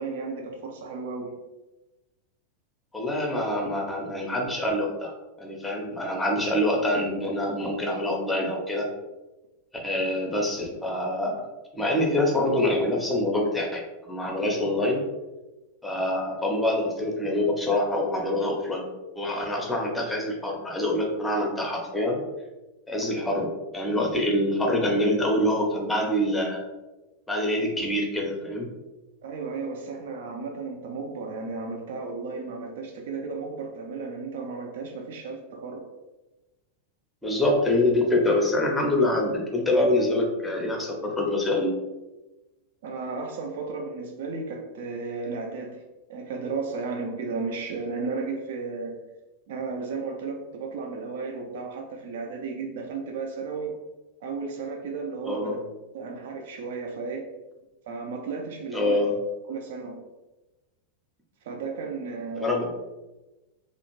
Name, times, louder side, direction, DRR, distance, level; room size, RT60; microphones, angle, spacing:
voice 1, 0.0-1.4 29.2-35.9 42.8-45.8 46.1-49.0 49.5-53.8 54.2-55.6 55.9-57.3 57.9-59.0 59.5-60.0 61.4-62.6, right 4 dB, 55° right, 2 dB, 0.4 m, -34 dB
voice 2, 2.9-5.1 5.4-8.9 9.8-11.4 11.7-15.0 15.8-18.8 19.1-22.2 22.9-26.6 27.3-28.7 37.2-41.8 55.3-55.6 58.7-59.2 62.4-62.7, left 1 dB, 5° left, -1 dB, 0.6 m, -25 dB
2.4 x 2.0 x 2.9 m, 1.1 s
figure-of-eight pair, 90°, 0 cm